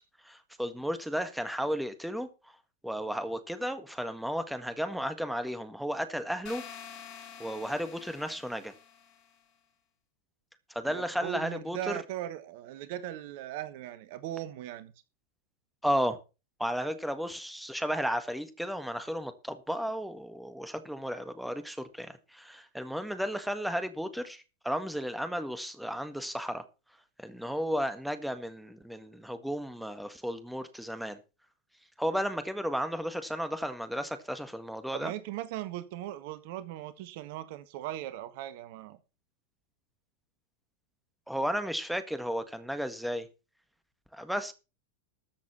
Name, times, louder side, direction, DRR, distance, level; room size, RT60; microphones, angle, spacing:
voice 1, 0.2-2.3 2.8-6.6 7.4-8.7 10.7-12.0 15.8-16.2 16.6-26.6 27.2-31.2 32.0-35.1 41.3-43.3 44.1-44.5, equal, ahead, 1.6 m, -33 dB
sound 1, 6.5-9.3, left 8 dB, 40° left, 4.5 m, -47 dB
voice 2, 10.8-14.9 34.9-39.0, right 12 dB, 50° right, 1.2 m, -39 dB
13.5 x 7.2 x 5.7 m
figure-of-eight pair, 90°, 0 cm